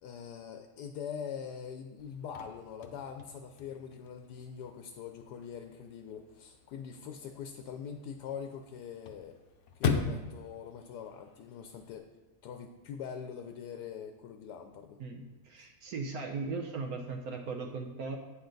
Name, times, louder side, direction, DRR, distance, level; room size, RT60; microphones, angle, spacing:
voice 1, 0.0-9.4 9.7-12.1 12.4-15.0, left 7 dB, 90° left, 6 dB, 1.2 m, -43 dB
Chirp tweet / Car / Slam, 2.0-12.0, left 5 dB, 60° left, 0.9 m, -40 dB
voice 2, 15.0-18.2, right 4 dB, 70° right, 2 dB, 1.2 m, -38 dB
8.9 x 6.9 x 3.9 m, 1.2 s
omnidirectional pair, 1.7 m